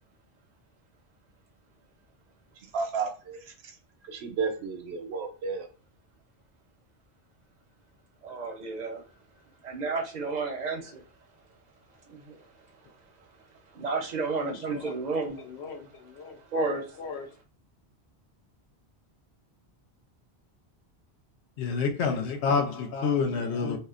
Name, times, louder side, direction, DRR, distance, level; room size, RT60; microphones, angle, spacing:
voice 1, 2.7-3.8 4.0-5.7, right 5 dB, 80° right, 0.8 m, -32 dB
voice 2, 8.2-9.0 9.6-11.0 12.1-12.4 13.7-15.4 16.5-16.8, right 3 dB, 50° right, 0.6 m, -31 dB
voice 3, 14.5-14.9 15.4-16.4 16.9-17.3 21.6-23.8, left 5 dB, 80° left, 0.8 m, -29 dB
2.7 x 2.0 x 2.4 m
omnidirectional pair, 1.1 m